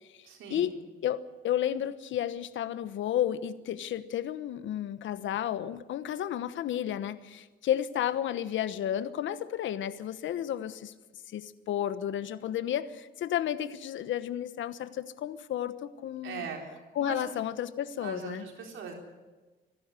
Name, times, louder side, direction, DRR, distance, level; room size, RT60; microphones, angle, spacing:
voice 1, 0.2-0.7 16.2-16.6 17.0-17.3 18.0-18.9, right 6 dB, 80° right, 1 dB, 3.9 m, -40 dB
voice 2, 1.4-7.2 7.7-10.7 11.3-11.4 11.7-12.8 13.2-14.9 15.2-15.7 16.0-16.4 17.0-18.4, left 11 dB, 75° left, 14 dB, 1.1 m, -31 dB
26.0 x 11.5 x 9.8 m, 1.2 s
cardioid pair, 90°, 20 cm